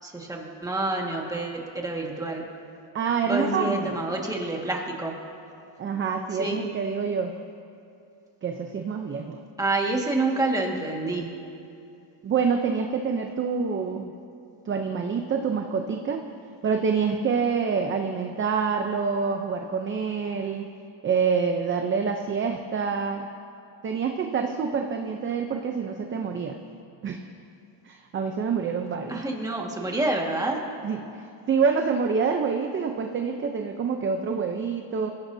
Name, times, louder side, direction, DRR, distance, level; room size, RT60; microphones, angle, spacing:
voice 1, 0.0-2.5 3.2-5.2 6.3-6.6 9.6-11.3 29.1-30.6, right 2 dB, 5° right, -1 dB, 1.8 m, -28 dB
voice 2, 2.9-3.9 5.8-7.3 8.4-9.4 12.2-14.1 14.7-16.2 16.6-20.7 21.0-23.3 23.8-26.6 27.0-27.2 27.8-29.2 30.8-35.1, right 5 dB, 25° right, 4 dB, 0.6 m, -27 dB
25.0 x 16.0 x 2.8 m, 2.6 s
cardioid pair, 155°, 48 cm